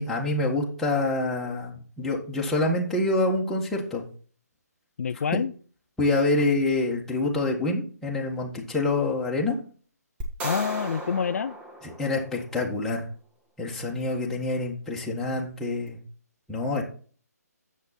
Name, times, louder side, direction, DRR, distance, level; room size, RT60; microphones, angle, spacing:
voice 1, 0.0-4.0 6.0-9.6 11.8-13.1 13.6-16.0 16.5-16.8, left 2 dB, 5° left, -4 dB, 1.6 m, -26 dB
voice 2, 5.0-5.5 10.4-11.6, left 6 dB, 55° left, 11 dB, 0.4 m, -27 dB
sound 1, 10.2-12.6, right 1 dB, 15° right, 1.3 m, -36 dB
10.5 x 7.4 x 4.2 m, 0.43 s
figure-of-eight pair, 150°, 9 cm